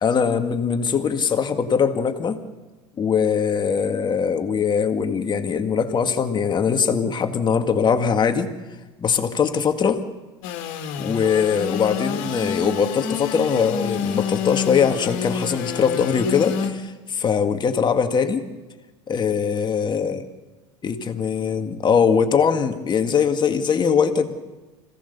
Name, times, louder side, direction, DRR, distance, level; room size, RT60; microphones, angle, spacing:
voice 1, 0.0-2.4 3.0-8.5 9.0-10.0 11.0-18.4 19.1-20.3 20.8-24.3, left 6 dB, 30° left, 7 dB, 2.1 m, -21 dB
Engine / Sawing, 10.4-16.7, left 7 dB, 60° left, 2.5 m, -28 dB
26.0 x 17.0 x 7.0 m, 1.2 s
hypercardioid pair, 75°, 15 cm